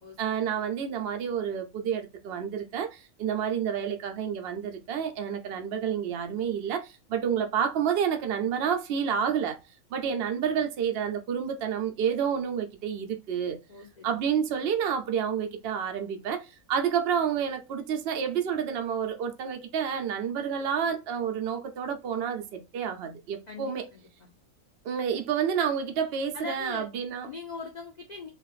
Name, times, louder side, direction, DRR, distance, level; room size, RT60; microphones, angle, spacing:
voice 1, 0.2-9.6 9.9-13.6 14.0-23.9 24.8-27.3, right 8 dB, 70° right, 0.5 m, -29 dB
voice 2, 13.7-14.2 23.5-24.3 26.3-26.9 27.3-28.3, left 4 dB, 65° left, 0.4 m, -41 dB
3.3 x 2.7 x 2.4 m
omnidirectional pair, 1.6 m